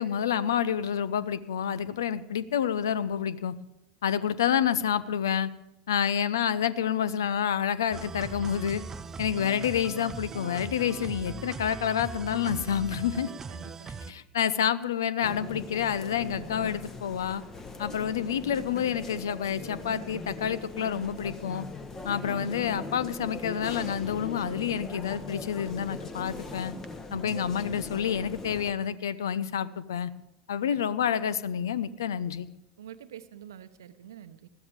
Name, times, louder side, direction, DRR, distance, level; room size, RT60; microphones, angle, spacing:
voice 1, 0.0-3.5 4.0-5.5 5.9-8.8 9.2-13.3 14.1-17.4 17.8-21.7 22.0-26.7 27.1-30.1 30.5-32.5, left 8 dB, 70° left, 18 dB, 0.6 m, -28 dB
sound 1, 7.9-14.1, right 4 dB, 20° right, 0.7 m, -40 dB
voice 2, 13.5-14.1 32.8-34.5, right 10 dB, 70° right, 12 dB, 0.8 m, -47 dB
sound 2, 15.2-28.7, left 3 dB, 25° left, 1.4 m, -40 dB
20.5 x 13.5 x 3.7 m, 0.92 s
figure-of-eight pair, 80°, 2 cm